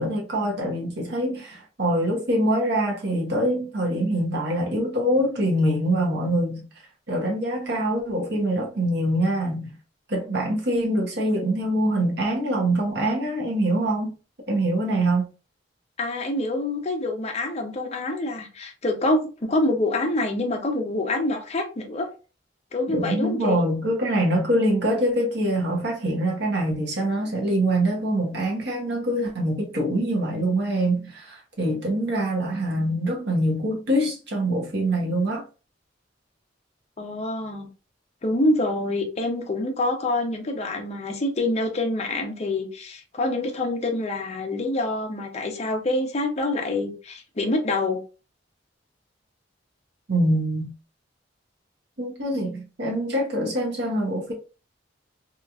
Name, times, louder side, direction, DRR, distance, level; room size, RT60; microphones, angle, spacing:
voice 1, 0.0-6.6 7.1-9.7 10.1-14.1 14.5-15.3 22.9-35.4 50.1-50.7 52.0-54.3, right 1 dB, 65° right, 0.9 m, -24 dB
voice 2, 16.0-22.1 22.7-23.6 37.0-37.7 38.2-48.0, left 2 dB, 35° left, 0.6 m, -26 dB
2.9 x 2.4 x 2.4 m
head